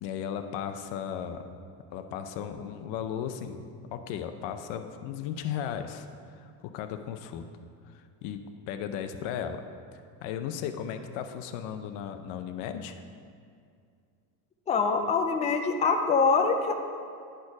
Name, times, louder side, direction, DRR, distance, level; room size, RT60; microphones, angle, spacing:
voice 1, 0.0-1.4 1.9-3.6 3.9-7.4 7.9-9.6 10.2-13.0, left 8 dB, 75° left, 8 dB, 0.7 m, -36 dB
voice 2, 14.7-16.7, left 4 dB, 15° left, 4 dB, 0.4 m, -24 dB
10.0 x 4.5 x 4.7 m, 2.3 s
cardioid pair, 130°, 42 cm